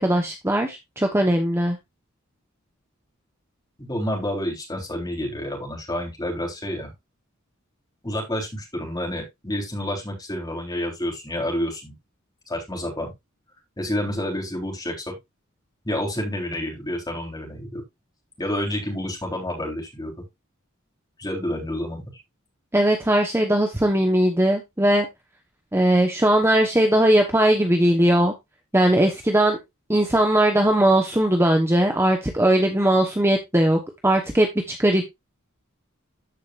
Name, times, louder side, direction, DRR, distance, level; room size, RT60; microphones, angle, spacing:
voice 1, 0.0-1.8 22.7-25.1 25.7-28.3 28.7-29.6 29.9-35.0, right 1 dB, 10° right, 1.1 m, -19 dB
voice 2, 3.8-6.9 8.0-11.9 12.5-13.1 13.8-15.2 15.8-17.8 18.4-20.1 21.2-22.2, left 1 dB, 20° left, 3.6 m, -29 dB
14.0 x 5.1 x 2.5 m
head